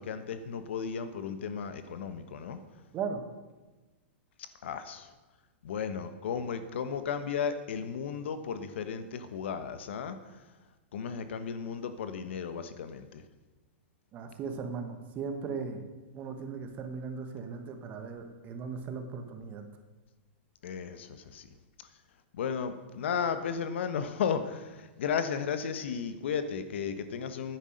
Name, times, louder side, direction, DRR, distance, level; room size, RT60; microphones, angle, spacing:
voice 1, 0.0-2.6 4.4-5.1 5.6-10.2 10.9-13.2 20.6-21.5 22.3-27.6, left 7 dB, 70° left, 10 dB, 1.1 m, -34 dB
voice 2, 14.1-15.8 16.1-19.7, right 5 dB, 25° right, 6 dB, 1.4 m, -37 dB
10.0 x 9.3 x 6.5 m, 1.2 s
hypercardioid pair, 155°, 7 cm